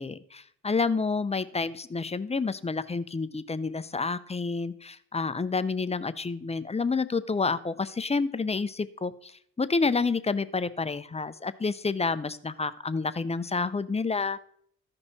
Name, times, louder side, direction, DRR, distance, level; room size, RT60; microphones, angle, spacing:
voice 1, 0.0-9.3 9.6-14.4, left 4 dB, 20° left, 13 dB, 0.5 m, -29 dB
14.0 x 5.4 x 4.0 m, 0.64 s
cardioid pair, 75°, 32 cm